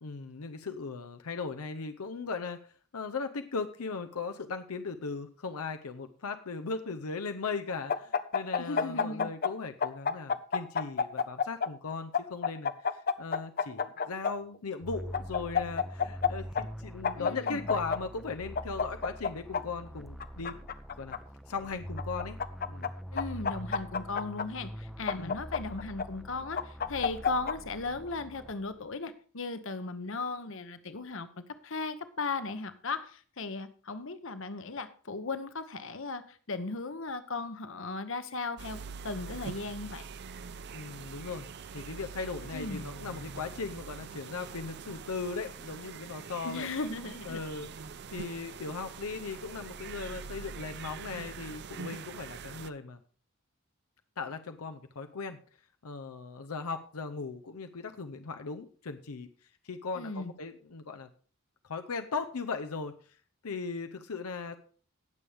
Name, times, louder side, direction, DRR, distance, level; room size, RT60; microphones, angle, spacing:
voice 1, 0.0-2.6 2.9-20.5 21.0-21.2 21.5-22.4 22.7-22.9 25.2-25.4 40.7-41.5 41.7-46.7 47.2-47.7 48.1-53.0 54.2-55.4 55.8-59.3 59.6-61.1 61.6-63.0 63.4-64.6, left 4 dB, 85° left, 7 dB, 0.7 m, -38 dB
sound 1, 7.9-9.5 9.8-11.7 12.1-14.3 15.1-16.3 16.5-16.6 17.0-18.0 18.5-19.6 20.2-21.2 22.0-22.9 23.2-24.4 25.1-26.0 26.6-27.5, left 6 dB, 40° left, 0.6 m, -29 dB
voice 2, 8.6-9.3 17.2-17.6 23.1-38.8 39.0-40.1 42.5-42.8 46.4-47.4 59.9-60.3, left 3 dB, 60° left, 11 dB, 1.0 m, -37 dB
sound 2, 14.8-28.9, equal, ahead, 0.6 m, -44 dB
sound 3, 38.6-52.7, right 5 dB, 50° right, 0.5 m, -44 dB
18.0 x 7.1 x 3.5 m, 0.43 s
head